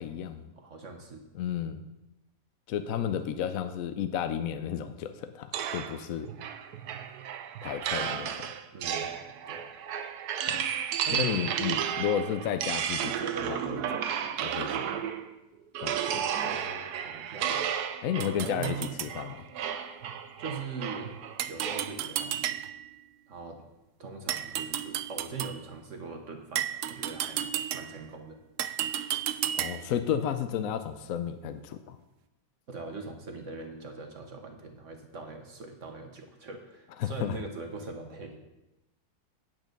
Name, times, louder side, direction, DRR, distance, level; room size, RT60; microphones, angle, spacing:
voice 1, 0.0-0.5 1.3-1.8 2.7-6.3 7.6-8.5 10.5-10.6 11.1-14.0 14.4-15.0 15.8-16.3 18.0-19.4 29.6-32.0 37.0-37.4, left 9 dB, 65° left, 10 dB, 0.8 m, -32 dB
voice 2, 0.5-1.2 8.7-9.7 11.0-11.5 12.2-12.4 16.4-17.7 18.2-18.9 20.4-21.1 21.5-22.7 23.3-23.6 24.0-28.4 32.7-38.4, right 4 dB, 50° right, 4 dB, 1.3 m, -41 dB
sound 1, 5.5-15.3 15.8-22.0, right 9 dB, 70° right, 1.1 m, -33 dB
sound 2, 18.2-19.1 21.4-22.9 24.3-25.6 26.5-28.1 28.6-30.0, right 10 dB, 90° right, 0.7 m, -33 dB
9.1 x 8.8 x 5.2 m, 0.97 s
omnidirectional pair, 1.9 m